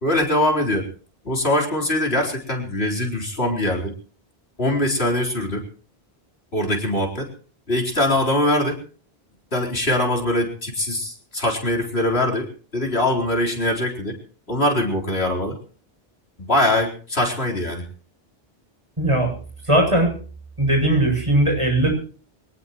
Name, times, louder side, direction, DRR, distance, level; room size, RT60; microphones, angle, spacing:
voice 1, 0.0-0.9 1.2-3.9 4.6-5.6 6.5-7.3 7.7-8.8 9.5-12.5 12.7-14.2 14.5-15.6 16.4-17.8, left 1 dB, 80° left, 0 dB, 4.5 m, -22 dB
voice 2, 19.0-19.3 19.6-20.1 20.6-21.9, right 1 dB, 30° right, 2 dB, 7.8 m, -18 dB
23.5 x 19.0 x 3.1 m, 0.42 s
omnidirectional pair, 1.0 m